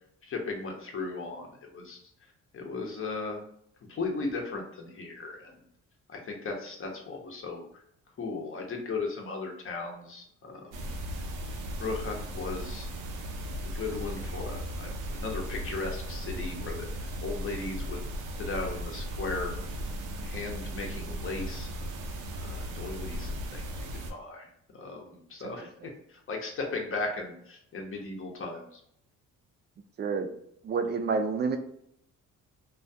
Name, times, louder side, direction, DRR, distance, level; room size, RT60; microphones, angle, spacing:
voice 1, 0.2-2.0 2.5-3.4 3.9-5.5 6.1-7.6 8.2-10.9 11.2-11.3 11.8-12.9 13.6-18.0 18.4-19.5 20.2-21.7 22.3-24.5 24.7-25.7 26.1-28.8, left 3 dB, 45° left, 1 dB, 0.7 m, -36 dB
sound 1, 10.7-24.1, equal, 85° right, 0.5 m, -36 dB
voice 2, 30.0-30.3 30.6-31.6, right 5 dB, 35° right, 7 dB, 0.4 m, -29 dB
2.3 x 2.2 x 2.6 m, 0.70 s
cardioid pair, 90°, 30 cm